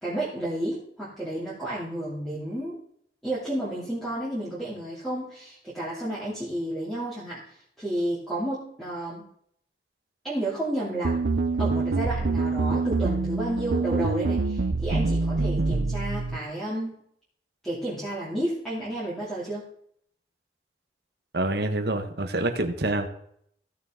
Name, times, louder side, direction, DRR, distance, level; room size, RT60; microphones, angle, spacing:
voice 1, 0.0-2.7 3.2-7.4 7.8-9.2 10.2-11.2 11.6-17.0 17.6-19.6, right 1 dB, ahead, -10 dB, 3.0 m, -31 dB
sound 1, 11.0-16.4, right 3 dB, 85° right, 0.7 m, -25 dB
voice 2, 21.3-23.1, right 2 dB, 65° right, 6 dB, 1.3 m, -26 dB
15.5 x 6.7 x 3.8 m, 0.66 s
head